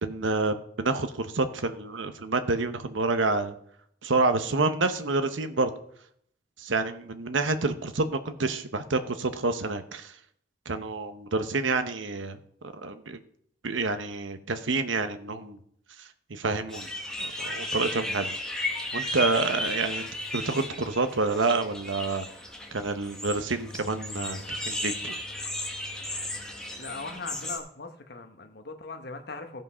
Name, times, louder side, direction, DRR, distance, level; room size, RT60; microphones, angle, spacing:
voice 1, 0.0-3.6 4.0-5.7 6.6-10.2 10.7-12.4 12.8-13.2 13.6-15.6 16.0-16.9 17.2-18.3 18.9-22.3 22.7-25.1, right 3 dB, 85° right, 10 dB, 0.9 m, -28 dB
sound 1, 16.7-27.6, left 1 dB, 5° left, 1.4 m, -34 dB
voice 2, 26.8-29.6, left 3 dB, 55° left, 6 dB, 1.1 m, -39 dB
15.0 x 5.4 x 5.6 m, 0.67 s
head